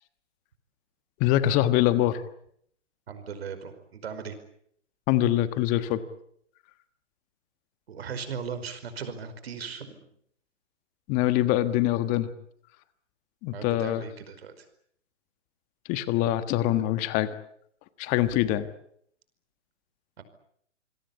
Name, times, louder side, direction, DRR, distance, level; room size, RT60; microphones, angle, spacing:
voice 1, 1.2-2.2 5.1-6.0 11.1-12.3 13.4-14.0 15.9-17.3 18.0-18.7, left 13 dB, 20° left, 13 dB, 1.4 m, -24 dB
voice 2, 3.1-4.4 7.9-10.0 13.5-14.7 20.2-20.3, right 6 dB, 55° right, 11 dB, 5.1 m, -38 dB
27.0 x 22.0 x 8.6 m, 0.68 s
figure-of-eight pair, 135°, 37 cm